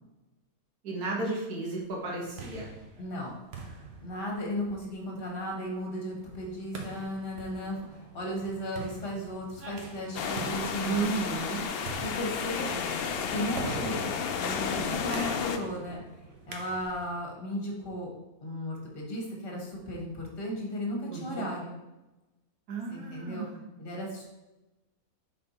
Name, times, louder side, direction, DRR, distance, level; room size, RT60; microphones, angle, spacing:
voice 1, 0.8-2.7 10.8-11.6 21.1-21.5 22.7-23.6, right 3 dB, 85° right, -2 dB, 1.8 m, -33 dB
sound 1, 2.0-17.2, right 4 dB, 50° right, 1.0 m, -44 dB
voice 2, 3.0-3.3 4.0-11.1 12.0-12.9 13.3-14.1 14.4-16.0 16.5-18.1 18.4-21.8 22.9-23.5 23.8-24.2, equal, 40° left, -1 dB, 1.5 m, -35 dB
sound 2, 10.1-15.6, left 6 dB, 70° left, 0.5 m, -32 dB
5.5 x 4.2 x 4.1 m, 1.0 s
omnidirectional pair, 1.6 m